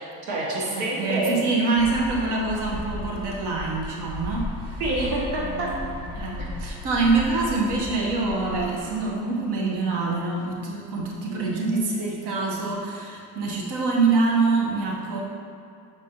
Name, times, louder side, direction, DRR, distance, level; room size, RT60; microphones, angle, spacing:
voice 1, 0.0-1.4 4.8-5.7, right 2 dB, 90° right, -3 dB, 1.1 m, -27 dB
voice 2, 0.7-4.8 5.4-15.2, right 3 dB, 60° right, -2 dB, 1.1 m, -25 dB
sound 1, 1.8-9.1, left 2 dB, 10° right, 0.8 m, -36 dB
6.8 x 4.9 x 2.9 m, 2.5 s
supercardioid pair, 90°, 45 cm